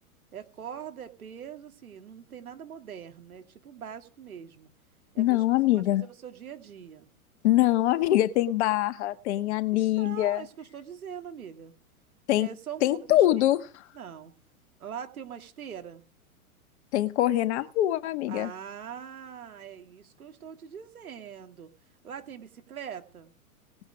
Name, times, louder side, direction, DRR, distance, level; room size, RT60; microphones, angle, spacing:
voice 1, 0.3-4.7 5.1-5.4 6.0-7.1 9.7-11.7 12.3-13.3 13.9-14.3 14.8-16.0 18.3-21.7 22.0-23.3, right 8 dB, 75° right, 2.6 m, -42 dB
voice 2, 5.2-6.0 7.4-10.4 12.3-12.5 12.8-13.8 16.9-18.5, left 14 dB, 50° left, 1.6 m, -24 dB
19.0 x 9.7 x 3.6 m
hypercardioid pair, 115°, 43 cm